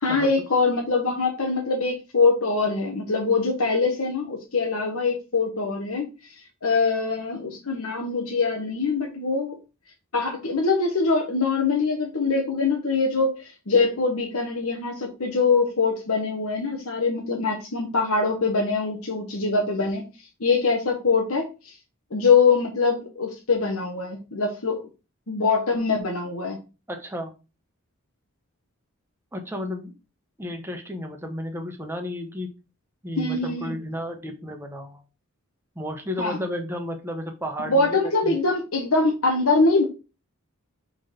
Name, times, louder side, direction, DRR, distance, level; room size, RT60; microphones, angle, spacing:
voice 1, 0.0-6.3 6.6-9.6 10.1-20.0 20.4-21.8 22.1-24.8 25.3-26.6 33.2-33.8 36.2-36.4 37.7-39.8, left 4 dB, 75° left, 1 dB, 1.3 m, -23 dB
voice 2, 26.9-27.3 29.3-29.9 30.4-32.5 33.0-35.0 35.7-38.4, left 1 dB, 10° right, 3 dB, 1.2 m, -33 dB
5.0 x 4.0 x 5.3 m, 0.30 s
head